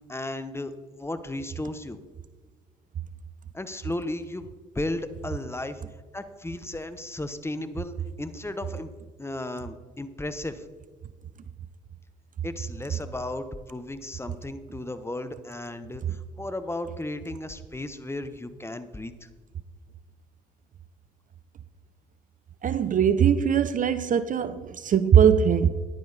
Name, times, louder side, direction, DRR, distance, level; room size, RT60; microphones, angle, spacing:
voice 1, 0.1-2.0 3.5-4.5 4.7-5.8 6.1-8.9 9.2-10.6 12.4-19.3, left 1 dB, 10° left, 0.9 m, -35 dB
voice 2, 22.6-25.7, right 8 dB, 40° right, 0.6 m, -21 dB
10.5 x 9.8 x 4.0 m
hypercardioid pair, 50°, 20 cm